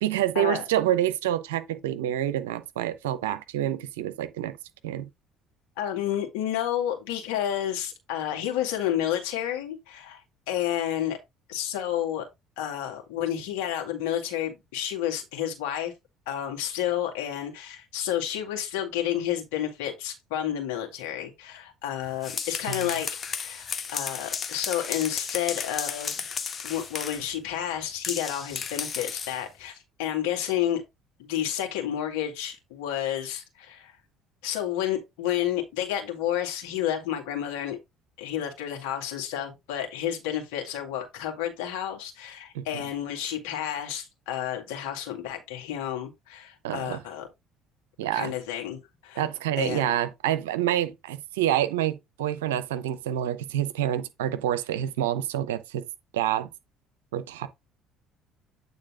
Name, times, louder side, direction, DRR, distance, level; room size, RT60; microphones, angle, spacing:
voice 1, 0.0-4.5 4.8-5.1 22.7-22.9 42.5-42.6 46.6-47.0 48.0-48.3 49.2-55.8 56.1-56.5 57.1-57.5, right 12 dB, 80° right, 0.7 m, -27 dB
voice 2, 5.8-10.2 10.5-11.2 11.5-12.3 12.6-15.9 16.3-23.1 23.4-26.2 26.6-30.8 31.2-34.0 34.4-37.8 38.2-47.3 48.1-49.2 49.6-49.9, left 11 dB, 75° left, 2.2 m, -30 dB
sound 1, 22.0-27.3 28.0-29.4, left 6 dB, 40° left, 1.2 m, -34 dB
8.8 x 3.9 x 3.7 m
hypercardioid pair, 60°, 0 cm